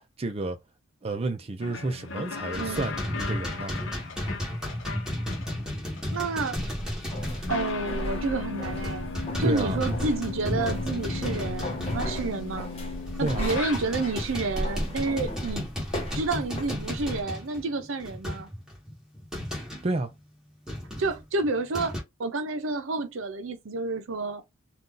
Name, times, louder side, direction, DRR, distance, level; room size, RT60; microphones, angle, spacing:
voice 1, 0.2-0.6 1.0-3.8 9.4-9.8 13.2-13.5 19.8-20.1, right 2 dB, 30° right, 0.4 m, -30 dB
sound 1, 1.6-14.3, left 5 dB, 65° left, 0.8 m, -38 dB
sound 2, 2.5-8.2 8.6-12.6 13.1-19.9 20.7-22.0, left 1 dB, 5° right, 1.1 m, -34 dB
voice 2, 2.6-2.9 6.1-6.6 7.5-9.1 9.4-12.7 13.2-15.7 16.1-18.5 21.0-24.4, right 3 dB, 70° right, 0.6 m, -30 dB
sound 3, 6.5-17.2, equal, 30° left, 0.7 m, -36 dB
2.7 x 2.4 x 3.7 m
head